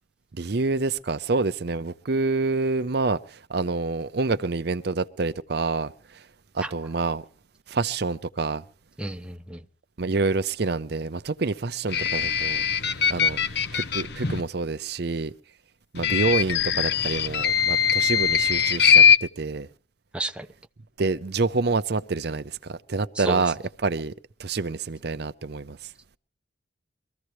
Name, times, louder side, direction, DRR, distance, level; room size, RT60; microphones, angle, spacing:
voice 1, 0.3-6.2 6.5-7.2 7.7-8.6 10.0-12.6 13.1-13.4 13.7-15.3 15.9-19.7 21.0-24.1 24.4-25.9, right 3 dB, 55° right, 0.6 m, -27 dB
voice 2, 9.0-9.6 20.1-20.5 23.1-23.4, right 2 dB, 5° right, 0.7 m, -32 dB
sound 1, 11.9-14.4 15.9-19.2, left 7 dB, 55° left, 0.9 m, -21 dB
23.5 x 15.0 x 3.1 m
head